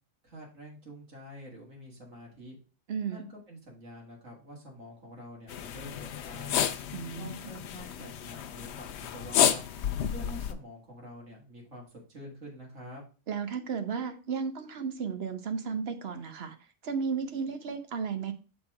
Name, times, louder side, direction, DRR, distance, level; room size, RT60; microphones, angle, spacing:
voice 1, 0.2-2.6 3.1-6.6 7.1-9.6 10.1-13.0, equal, 80° right, -2 dB, 2.3 m, -47 dB
voice 2, 2.9-3.2 6.9-7.3 13.3-16.6 16.8-18.3, right 6 dB, 55° right, 8 dB, 1.1 m, -34 dB
sound 1, 5.5-10.5, left 9 dB, 65° left, 0.8 m, -31 dB
6.9 x 4.2 x 4.7 m, 0.34 s
omnidirectional pair, 1.3 m